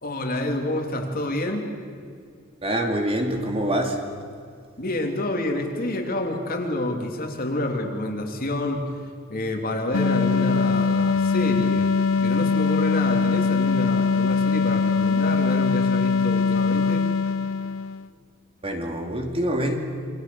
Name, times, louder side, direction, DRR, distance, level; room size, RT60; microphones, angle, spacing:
voice 1, 0.0-1.7 4.8-8.9 9.3-11.9 12.2-17.0, left 1 dB, 45° left, 3 dB, 3.2 m, -28 dB
voice 2, 2.6-4.0 18.6-19.8, right 1 dB, 30° right, 3 dB, 2.6 m, -25 dB
sound 1, 9.9-18.1, left 5 dB, 75° left, 0.6 m, -22 dB
28.0 x 24.5 x 7.1 m, 2.2 s
head